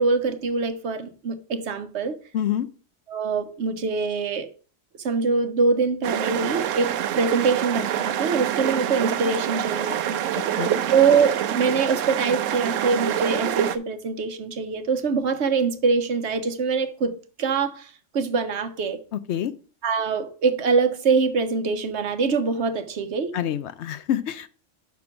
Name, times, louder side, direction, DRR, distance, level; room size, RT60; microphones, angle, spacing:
voice 1, 0.0-2.2 3.1-4.5 5.0-10.2 10.9-17.1 17.4-17.9 18.1-19.0 19.8-23.3, right 4 dB, 65° right, 1.1 m, -24 dB
voice 2, 2.3-2.7 10.6-10.8 19.1-19.5 23.3-24.5, left 10 dB, 70° left, 0.8 m, -27 dB
sound 1, 6.0-13.8, right 10 dB, 90° right, 1.0 m, -26 dB
6.0 x 5.9 x 4.9 m
omnidirectional pair, 1.3 m